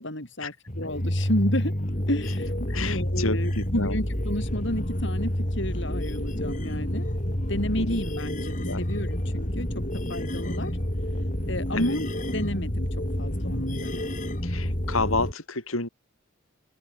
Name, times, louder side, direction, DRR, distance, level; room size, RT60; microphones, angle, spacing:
voice 1, 0.0-1.7 2.1-7.1 7.5-9.7 9.9-10.8 11.5-14.0, left 1 dB, 60° left, 7.4 m, -31 dB
sound 1, 0.7-15.3, equal, 35° left, 4.0 m, -29 dB
voice 2, 2.7-4.0 7.8-8.0 8.6-8.8 11.7-12.0 13.9-14.0 14.4-15.9, left 3 dB, 80° left, 6.6 m, -30 dB
open air
head